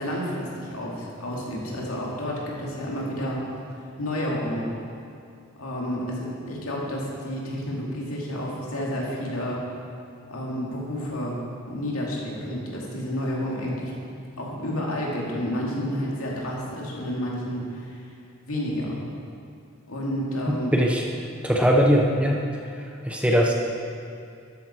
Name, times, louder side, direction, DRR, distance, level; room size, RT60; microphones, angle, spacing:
voice 1, 0.0-3.4 4.0-4.7 5.6-9.6 10.3-11.4 11.7-13.9 14.4-18.0 18.5-19.0 19.9-20.7, equal, 80° left, -3 dB, 2.3 m, -30 dB
voice 2, 20.7-21.0 21.4-22.4 23.0-23.5, equal, 5° right, -1 dB, 0.7 m, -20 dB
12.5 x 8.9 x 4.3 m, 2.5 s
head